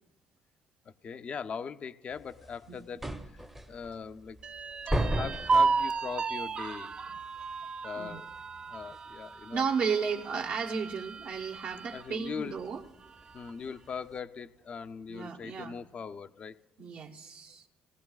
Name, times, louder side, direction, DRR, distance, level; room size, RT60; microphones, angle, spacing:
voice 1, 0.9-4.4 5.0-7.0 7.8-8.3 8.7-9.6 11.9-12.6 13.3-16.6, left 6 dB, 40° left, 11 dB, 0.5 m, -40 dB
sound 1, 2.1-14.2, right 1 dB, 10° right, 0.7 m, -38 dB
sound 2, 4.4-12.1 12.5-12.6 13.0-13.7, right 4 dB, 35° right, 0.3 m, -33 dB
voice 2, 9.5-12.8 15.1-15.8 16.8-17.6, right 6 dB, 60° right, 2 dB, 1.1 m, -33 dB
19.0 x 15.0 x 2.4 m, 1.2 s
cardioid pair, 100°, 3 cm